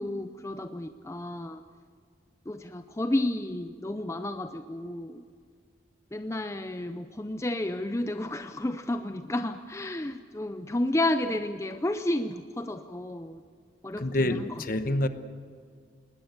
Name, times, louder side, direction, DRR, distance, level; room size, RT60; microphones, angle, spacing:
voice 1, 0.0-1.6 2.5-5.2 6.1-13.4 13.8-14.4, left 1 dB, 15° left, 0.5 m, -31 dB
voice 2, 14.0-15.1, left 1 dB, 45° left, 1.0 m, -27 dB
20.5 x 20.0 x 8.1 m
head